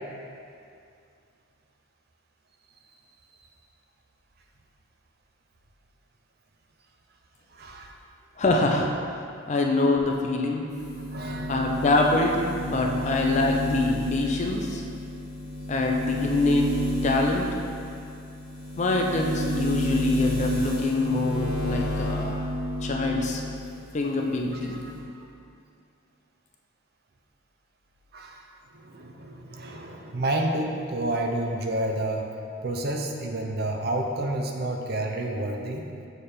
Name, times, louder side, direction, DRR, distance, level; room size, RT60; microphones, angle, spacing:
voice 1, 7.5-7.9 11.1-12.0 12.9-13.2 24.6-25.0 28.1-28.4 28.7-32.3 32.6-35.8, right 1 dB, 50° right, 2 dB, 0.5 m, -30 dB
voice 2, 8.4-8.9 9.5-10.7 11.5-14.8 15.7-16.7 17.0-17.5 18.8-22.5 22.8-23.4 23.9-24.8, left 2 dB, 35° left, 1 dB, 0.4 m, -25 dB
sound 1, 10.7-23.6 24.0-25.0, left 1 dB, ahead, 1.3 m, -31 dB
6.7 x 3.4 x 4.3 m, 2.4 s
head